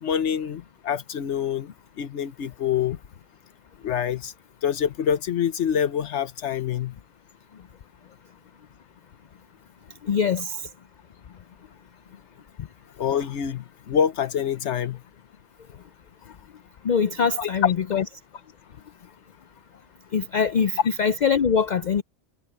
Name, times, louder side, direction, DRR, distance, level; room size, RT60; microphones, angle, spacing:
voice 1, 0.0-3.0 3.8-4.3 4.6-7.0 13.0-15.0 17.4-17.7, left 8 dB, 75° left, 1.2 m, -26 dB
voice 2, 10.0-10.6 16.8-18.0 20.1-22.0, left 6 dB, 50° left, 0.5 m, -23 dB
omnidirectional pair, 1.2 m